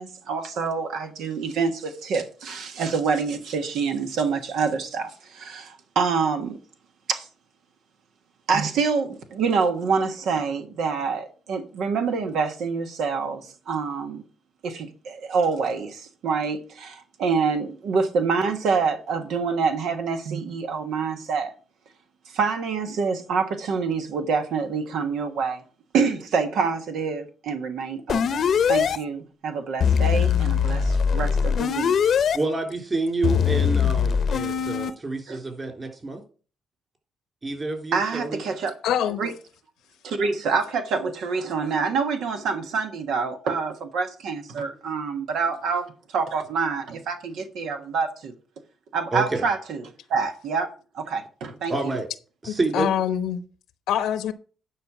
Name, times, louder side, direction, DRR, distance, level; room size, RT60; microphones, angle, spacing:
voice 1, 0.0-6.6 7.1-7.3 8.5-14.2 14.6-21.5 22.3-25.6 25.9-31.9 35.3-35.4 37.9-38.7 39.2-39.3 40.0-48.3 48.9-52.0, right 5 dB, 75° right, 1.3 m, -26 dB
sound 1, 28.1-29.0 29.8-32.4 33.2-34.9, left 7 dB, 60° left, 0.8 m, -21 dB
voice 2, 32.3-36.2 37.4-38.4 49.1-49.4 51.7-52.1 52.4-52.9, right 2 dB, 30° right, 3.6 m, -28 dB
voice 3, 38.8-39.2 52.5-53.4 53.9-54.3, left 10 dB, 85° left, 0.9 m, -24 dB
10.0 x 5.2 x 6.0 m
cardioid pair, 90°, 0 cm